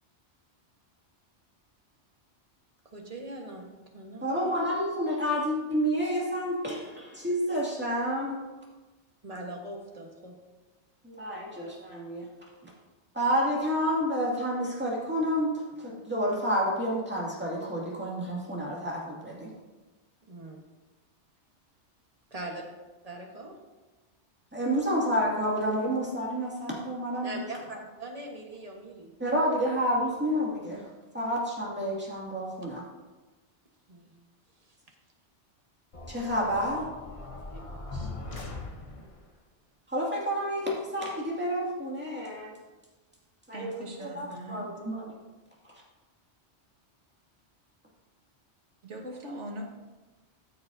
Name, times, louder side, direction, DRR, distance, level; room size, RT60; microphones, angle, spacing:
voice 1, 2.9-3.7 3.9-4.3 9.2-10.3 20.3-20.6 22.3-22.6 23.0-23.5 27.2-29.1 33.9-34.1 37.5-37.6 37.9-38.1, right 2 dB, 35° right, 0 dB, 1.4 m, -41 dB
voice 2, 4.2-8.4 11.0-12.3 13.1-19.5 24.5-27.4 29.2-30.8 31.1-32.8 36.1-36.9 39.9-42.5 43.5-45.0, equal, 10° right, -5 dB, 2.2 m, -29 dB
sound 1, 35.9-39.3, left 2 dB, 30° left, 0.9 m, -40 dB
voice 3, 43.5-44.7 48.8-49.6, right 1 dB, 85° right, 0 dB, 1.8 m, -40 dB
13.5 x 6.8 x 2.7 m, 1.2 s
omnidirectional pair, 1.2 m